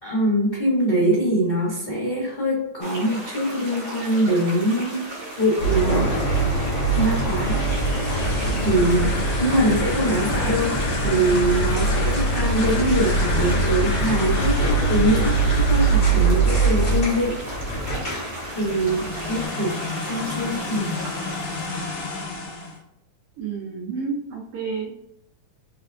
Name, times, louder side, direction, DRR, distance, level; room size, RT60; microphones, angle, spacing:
voice 1, 0.0-5.1 5.4-6.3 6.9-7.9 8.2-17.4 18.5-21.0, right 1 dB, 85° left, -7 dB, 0.5 m, -23 dB
sound 1, 2.8-22.2, right 1 dB, 60° right, 2.1 m, -36 dB
sound 2, 5.6-19.5, right 3 dB, 35° left, 1.4 m, -23 dB
sound 3, 7.4-16.4 18.5-22.8, left 3 dB, 70° left, 1.2 m, -32 dB
voice 2, 23.4-24.9, right 5 dB, 90° right, -3 dB, 1.2 m, -30 dB
4.6 x 3.3 x 2.5 m, 0.80 s
omnidirectional pair, 3.5 m